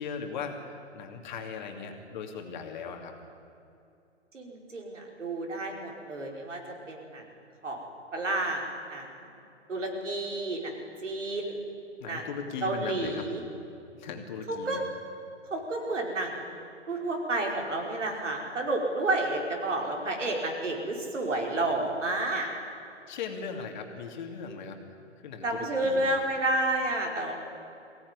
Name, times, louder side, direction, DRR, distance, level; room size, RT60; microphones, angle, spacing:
voice 1, 0.0-3.1 12.0-13.3 14.0-14.8 23.1-24.8 25.2-26.1, left 5 dB, 40° left, 4 dB, 2.8 m, -38 dB
voice 2, 4.3-7.2 7.6-7.8 8.1-9.3 9.7-11.6 12.0-12.2 12.6-13.4 14.5-14.8 15.5-16.6 16.9-22.5 25.4-27.3, right 2 dB, 80° right, 1 dB, 5.1 m, -30 dB
21.5 x 17.5 x 9.9 m, 2.7 s
hypercardioid pair, 145°, 36 cm